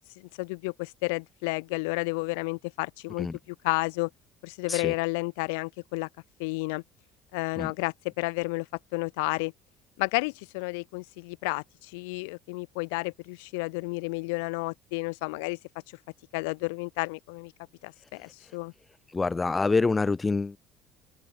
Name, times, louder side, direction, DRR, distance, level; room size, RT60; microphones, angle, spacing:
voice 1, 0.4-4.1 4.4-6.1 6.4-6.8 7.3-8.7 8.9-9.5 10.0-15.6 16.3-17.5 17.8-18.7, left 29 dB, 65° left, 7.3 m, -31 dB
voice 2, 19.1-20.6, left 3 dB, 20° left, 3.0 m, -26 dB
open air
figure-of-eight pair, 55°, 0 cm